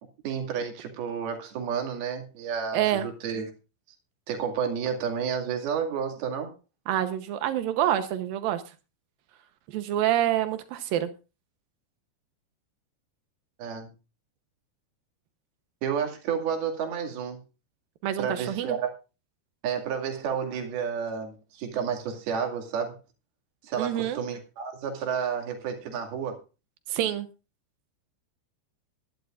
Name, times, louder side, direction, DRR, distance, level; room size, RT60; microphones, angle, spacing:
voice 1, 0.2-3.5 4.3-6.6 13.6-13.9 15.8-17.4 18.2-18.9 19.6-23.0 23.6-26.4, right 7 dB, 60° right, 3.9 m, -31 dB
voice 2, 2.7-3.1 6.9-8.6 9.7-11.1 18.0-18.8 23.8-24.2 26.9-27.3, right 11 dB, 85° right, 2.1 m, -27 dB
21.0 x 11.5 x 2.5 m
omnidirectional pair, 5.5 m